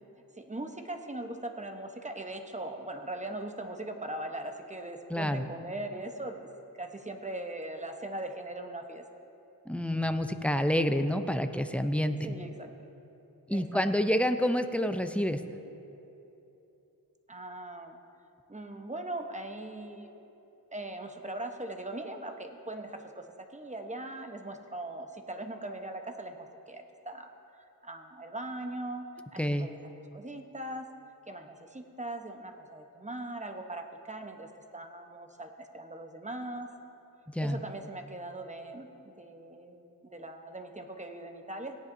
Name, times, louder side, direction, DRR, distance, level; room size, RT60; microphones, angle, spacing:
voice 1, 0.4-6.5 6.8-9.0 12.2-12.7 13.5-13.8 17.3-18.0 18.5-20.2 20.7-27.3 27.5-29.1 29.3-29.8 30.1-30.9 31.3-36.7 37.4-41.8, right 1 dB, 20° right, 4 dB, 0.9 m, -40 dB
voice 2, 5.1-5.4 9.7-12.3 13.5-15.4 29.4-29.7 37.3-37.6, equal, 5° left, 8 dB, 0.5 m, -28 dB
17.5 x 10.5 x 2.6 m, 3.0 s
wide cardioid pair, 65°, 40 cm